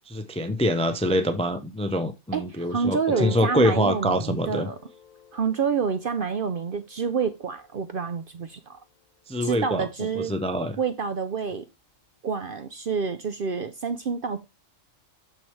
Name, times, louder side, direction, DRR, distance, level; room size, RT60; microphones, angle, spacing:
voice 1, 0.1-4.7 9.3-9.9 10.2-10.8, equal, 10° left, 0.4 m, -25 dB
voice 2, 2.3-4.8 5.3-8.8 9.4-10.3 10.8-11.7 12.2-14.4, right 5 dB, 55° right, 0.6 m, -28 dB
Piano, 3.1-9.7, left 7 dB, 40° left, 0.8 m, -45 dB
6.7 x 6.2 x 3.2 m
omnidirectional pair, 1.4 m